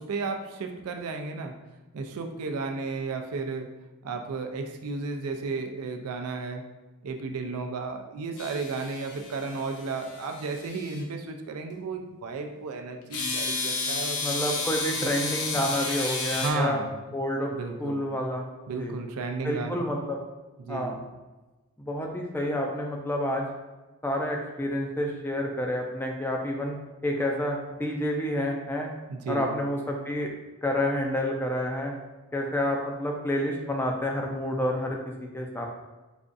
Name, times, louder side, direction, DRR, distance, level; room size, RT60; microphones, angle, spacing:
voice 1, 0.0-1.5 1.9-3.7 4.0-6.6 7.0-14.2 15.0-15.1 15.5-15.7 16.3-16.9 17.5-18.0 18.7-19.8 20.6-21.0 29.1-29.6, right 4 dB, 85° right, 4 dB, 0.4 m, -33 dB
sound 1, 8.4-11.0 13.1-16.5, left 3 dB, 85° left, 0.7 m, -32 dB
voice 2, 14.2-16.8 17.1-17.5 17.8-18.4 18.8-19.0 19.4-20.2 20.7-21.0 21.8-23.5 24.0-26.8 27.0-28.9 29.3-30.3 30.6-31.9 32.3-35.7, left 1 dB, 10° left, 1 dB, 0.3 m, -29 dB
5.0 x 2.3 x 2.5 m, 1.2 s
head